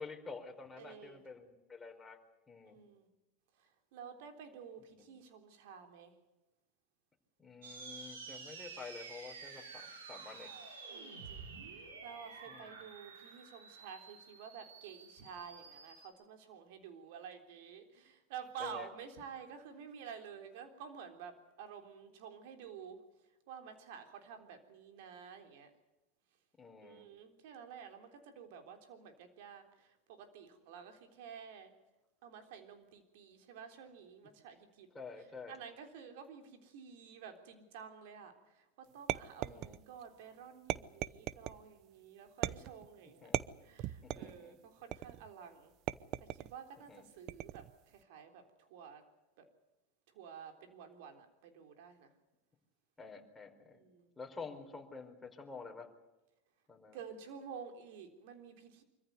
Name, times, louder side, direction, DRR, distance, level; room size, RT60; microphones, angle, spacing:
voice 1, 0.0-2.2 2.5-2.8 4.9-5.1 7.4-10.5 12.5-12.9 18.6-18.9 26.6-27.1 34.9-35.6 39.5-39.8 43.2-43.3 44.0-44.6 46.9-47.0 53.0-53.8 54.2-55.9 56.7-57.0, left 4 dB, 15° left, 1 dB, 4.6 m, -49 dB
voice 2, 0.8-1.2 2.6-3.1 3.5-6.2 10.9-23.0 23.5-25.7 26.8-31.7 32.2-34.9 35.5-43.3 43.6-45.7 46.2-49.0 49.4-49.5 50.1-52.1 53.7-54.1 56.9-58.8, right 7 dB, 70° right, 6 dB, 3.6 m, -51 dB
sound 1, 7.6-16.1, right 5 dB, 90° right, 4.2 m, -50 dB
sound 2, 39.1-40.0 40.7-41.6 42.4-42.9 43.3-44.4 44.9-45.3 45.9-46.5 47.3-47.7, right 15 dB, 55° right, 0.7 m, -38 dB
25.0 x 14.5 x 9.6 m, 1.0 s
hypercardioid pair, 100°, 0 cm